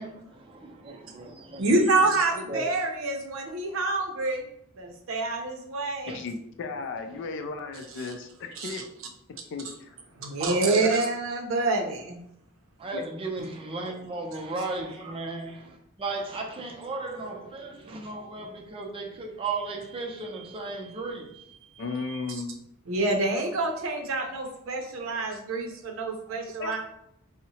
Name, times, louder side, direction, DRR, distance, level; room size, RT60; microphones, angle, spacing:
voice 1, 0.0-1.7 2.5-2.7 6.1-6.2 10.4-10.9 12.8-22.3 25.1-25.2 26.3-26.4, right 3 dB, 25° right, 1 dB, 0.4 m, -36 dB
voice 2, 1.6-4.4 4.8-6.2 8.0-8.1 8.6-8.8 10.2-12.2 22.3-22.4 22.9-26.8, right 2 dB, 80° right, 2 dB, 0.6 m, -27 dB
voice 3, 6.1-8.8 9.5-10.0 12.9-13.0 15.0-15.1 21.8-22.6 26.6-26.8, left 4 dB, 60° left, 7 dB, 0.3 m, -35 dB
2.7 x 2.0 x 2.7 m, 0.75 s
head